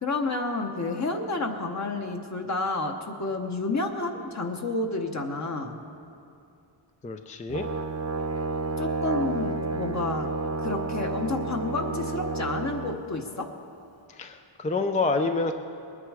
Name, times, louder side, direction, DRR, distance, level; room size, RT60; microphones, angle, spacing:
voice 1, 0.0-5.8 8.8-10.3 10.6-13.5, left 3 dB, 35° left, 3 dB, 1.0 m, -30 dB
voice 2, 7.0-7.6 14.1-15.5, left 3 dB, 15° left, 6 dB, 0.4 m, -27 dB
Brass instrument, 7.5-13.0, right 3 dB, 35° right, 0.8 m, -30 dB
21.0 x 9.8 x 4.9 m, 2.6 s
wide cardioid pair, 145°, 48 cm